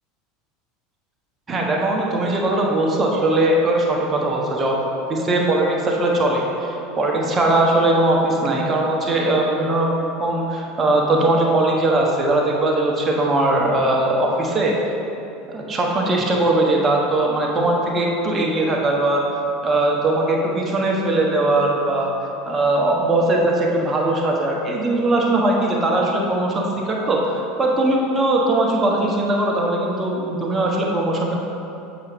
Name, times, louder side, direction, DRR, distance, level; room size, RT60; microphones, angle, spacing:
voice 1, 1.5-4.8 5.1-9.9 10.2-14.7 15.5-19.3 19.6-22.1 22.5-31.3, right 2 dB, 25° right, -1 dB, 1.1 m, -20 dB
8.1 x 6.0 x 3.0 m, 2.9 s
figure-of-eight pair, 75°, 0 cm